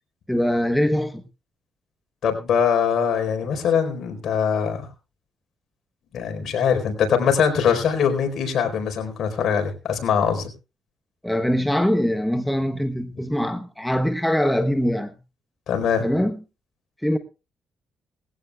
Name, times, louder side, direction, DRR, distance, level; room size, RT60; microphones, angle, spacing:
voice 1, 0.3-1.2 11.2-15.1 16.0-16.4 17.0-17.2, equal, 5° left, 1.2 m, -22 dB
voice 2, 2.2-4.9 6.1-10.5 15.7-16.1, left 7 dB, 65° left, 4.4 m, -22 dB
20.0 x 16.0 x 2.4 m
cardioid pair, 90°, 0 cm